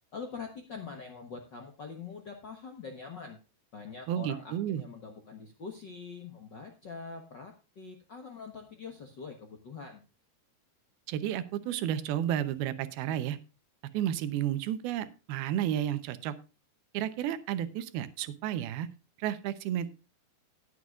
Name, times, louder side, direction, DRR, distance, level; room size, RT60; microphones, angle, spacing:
voice 1, 0.1-3.4 3.7-10.0, left 5 dB, 80° left, 4 dB, 1.0 m, -44 dB
voice 2, 4.1-4.8 11.1-13.4 13.9-16.3 16.9-18.9 19.2-19.9, right 11 dB, 85° right, 13 dB, 2.8 m, -32 dB
19.0 x 7.9 x 2.4 m, 0.31 s
omnidirectional pair, 4.3 m